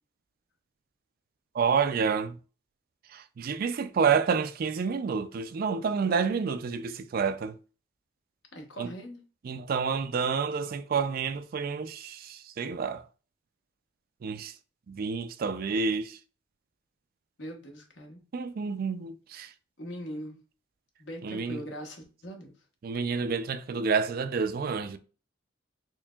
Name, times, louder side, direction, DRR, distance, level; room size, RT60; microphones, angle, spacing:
voice 1, 1.5-2.4 3.1-7.5 8.8-8.9 9.4-13.0 14.2-14.5 14.9-16.2 18.3-19.5 21.2-21.6 22.8-25.0, right 5 dB, 50° right, 0.3 m, -29 dB
voice 2, 8.5-9.2 17.4-18.2 19.8-20.4 21.0-22.5, right 1 dB, 65° left, 1.1 m, -40 dB
4.5 x 3.3 x 2.3 m
head